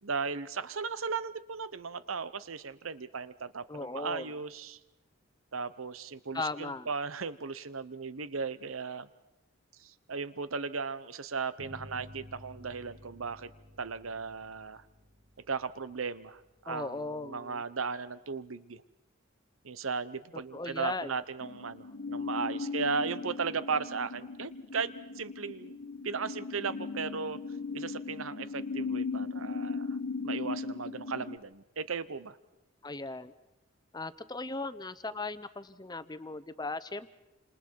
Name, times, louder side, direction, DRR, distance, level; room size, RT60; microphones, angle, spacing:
voice 1, 0.0-4.8 5.5-9.1 9.8-13.5 13.8-14.8 15.5-18.8 19.6-25.8 26.0-27.4 27.7-29.9 30.2-32.4, right 5 dB, 85° right, 15 dB, 0.9 m, -36 dB
voice 2, 3.7-4.3 6.3-6.9 16.7-17.6 20.5-21.1 32.8-33.3 33.9-37.1, left 3 dB, 20° left, 13 dB, 0.9 m, -37 dB
sound 1, 11.6-16.7, left 1 dB, 70° right, 4.8 m, -52 dB
sound 2, 21.4-31.4, left 4 dB, 80° left, 1.6 m, -37 dB
29.0 x 27.5 x 4.7 m, 0.94 s
head